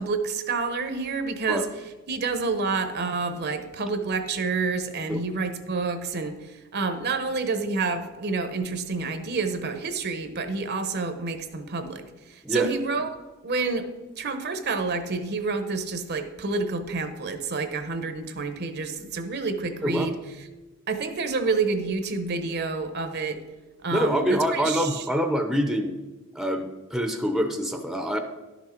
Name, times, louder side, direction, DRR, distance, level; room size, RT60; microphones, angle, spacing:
voice 1, 0.0-1.6 2.1-6.4 6.7-12.0 12.5-13.2 13.4-13.9 14.2-20.2 20.9-23.4 23.8-25.0, right 4 dB, 50° right, 9 dB, 0.8 m, -28 dB
voice 2, 19.8-20.1 23.9-25.9 26.3-28.2, equal, ahead, 4 dB, 0.7 m, -25 dB
11.0 x 6.2 x 4.4 m, 1.2 s
head